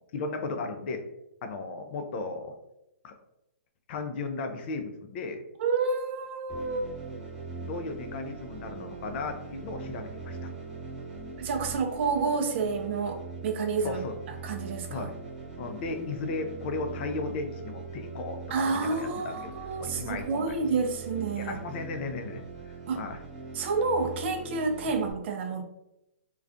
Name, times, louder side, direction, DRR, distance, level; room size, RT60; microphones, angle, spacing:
voice 1, 0.1-1.0 1.4-2.5 3.0-3.1 3.9-5.4 7.6-10.4 13.8-14.1 14.9-15.1 15.6-19.5 19.8-20.6 21.3-23.2, left 3 dB, 50° left, 6 dB, 0.4 m, -35 dB
voice 2, 5.6-6.9 11.4-14.0 14.4-15.1 18.5-21.6 22.9-23.0 23.5-25.6, right 4 dB, 55° right, 4 dB, 0.4 m, -29 dB
sound 1, 6.5-25.1, right 4 dB, ahead, 0.9 m, -41 dB
2.3 x 2.2 x 2.4 m, 0.87 s
hypercardioid pair, 135°, 8 cm